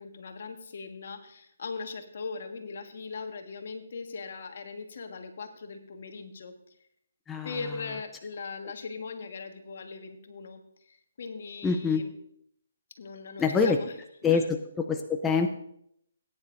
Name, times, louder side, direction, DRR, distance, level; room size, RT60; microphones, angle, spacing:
voice 1, 0.0-6.6 7.4-12.1 13.0-13.9 14.2-14.4, left 4 dB, 60° left, 5 dB, 1.7 m, -40 dB
voice 2, 7.3-7.6 11.6-12.0 13.4-13.8 14.2-15.5, left 5 dB, 10° left, 5 dB, 0.6 m, -25 dB
17.5 x 9.9 x 2.6 m, 0.72 s
hypercardioid pair, 145°, 0 cm